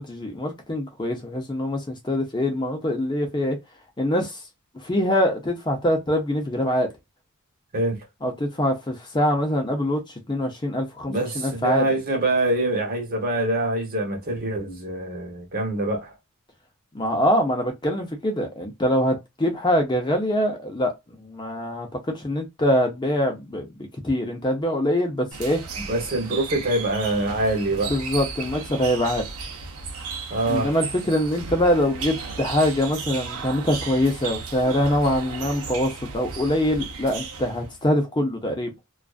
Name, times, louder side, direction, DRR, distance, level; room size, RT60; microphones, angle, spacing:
voice 1, 0.0-3.6 4.0-4.4 4.8-6.9 8.2-10.0 10.3-11.9 16.9-20.9 21.2-23.7 24.0-25.6 27.9-29.3 30.5-38.7, left 1 dB, 20° left, 0.5 m, -24 dB
voice 2, 7.7-8.1 11.1-16.1 25.9-28.0 30.3-30.7, right 2 dB, 40° right, 0.9 m, -25 dB
sound 1, 25.3-37.8, right 5 dB, 70° right, 0.7 m, -35 dB
2.4 x 2.3 x 2.3 m
head